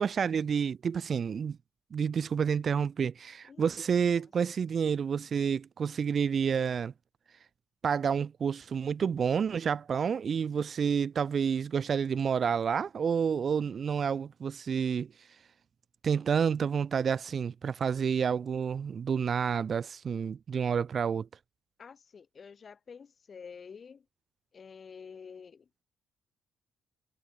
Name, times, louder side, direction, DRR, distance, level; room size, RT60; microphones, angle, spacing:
voice 1, 0.0-1.6 1.9-6.9 7.8-15.1 16.0-21.3, right 7 dB, 45° right, 0.4 m, -29 dB
voice 2, 21.8-24.1 24.5-25.8, left 6 dB, 40° left, 2.4 m, -49 dB
cardioid pair, 100°, 0 cm